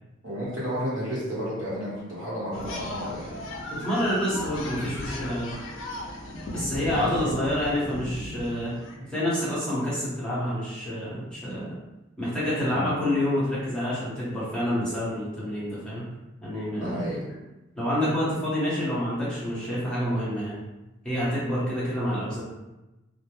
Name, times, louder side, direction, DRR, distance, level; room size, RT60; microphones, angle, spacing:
voice 1, 0.2-3.3 6.9-7.3 12.7-12.9 16.8-17.3, equal, 70° right, -8 dB, 1.0 m, -32 dB
sound 1, 2.5-8.9, left 1 dB, 70° left, 0.4 m, -35 dB
voice 2, 3.7-5.5 6.5-8.7 9.1-11.7 12.2-16.1 16.4-17.1 17.8-20.6 21.0-22.4, equal, 5° left, -10 dB, 0.8 m, -28 dB
2.2 x 2.1 x 2.9 m, 1.0 s
head